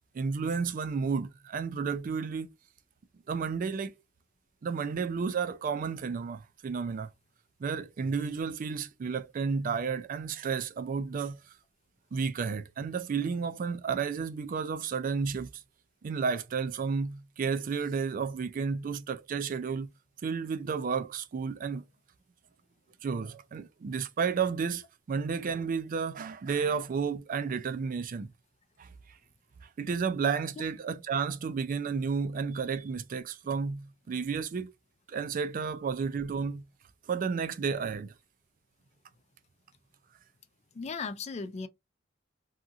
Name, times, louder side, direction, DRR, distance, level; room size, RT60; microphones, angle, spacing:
voice 1, 0.1-2.5 3.3-3.9 4.6-7.1 7.6-11.4 12.1-15.6 16.0-19.9 20.2-21.8 23.0-28.3 28.8-28.9 29.6-34.7 35.1-36.6 37.1-38.1, right 5 dB, 45° right, 0.3 m, -32 dB
voice 2, 40.7-41.7, left 4 dB, 35° left, 0.4 m, -36 dB
2.8 x 2.4 x 2.4 m
head